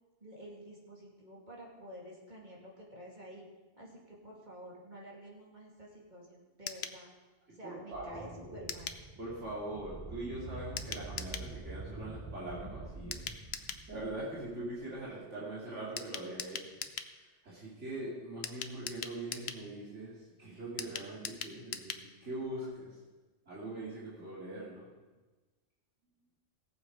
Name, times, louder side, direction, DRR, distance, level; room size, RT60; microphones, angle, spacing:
voice 1, 0.2-3.4 3.8-7.1 7.5-8.9, equal, 40° right, -3 dB, 2.7 m, -50 dB
sound 1, 6.7-7.0 8.7-9.0 10.8-11.5 13.1-13.9 16.0-17.1 18.4-19.6 20.8-22.1 22.4-22.5 22.7-22.8, left 7 dB, 65° left, 0.9 m, -41 dB
voice 2, 7.5-8.7 9.2-23.0 23.5-24.9, right 1 dB, 80° right, -7 dB, 3.1 m, -42 dB
sound 2, 7.9-15.0, right 3 dB, 20° right, 0.8 m, -47 dB
18.0 x 7.2 x 5.0 m, 1.3 s
omnidirectional pair, 1.2 m